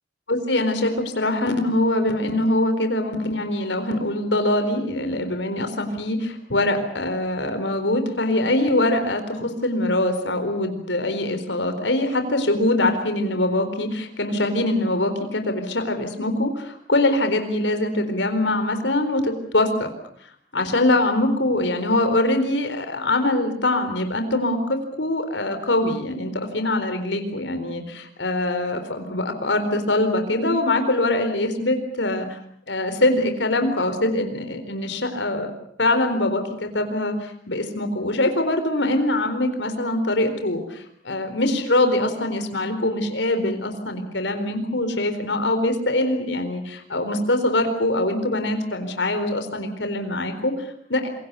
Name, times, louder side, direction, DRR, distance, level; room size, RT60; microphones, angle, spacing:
voice 1, 0.3-19.9 20.5-32.4 32.7-35.5 35.8-51.1, left 1 dB, 90° left, 8 dB, 4.2 m, -23 dB
27.5 x 24.0 x 6.9 m, 0.64 s
head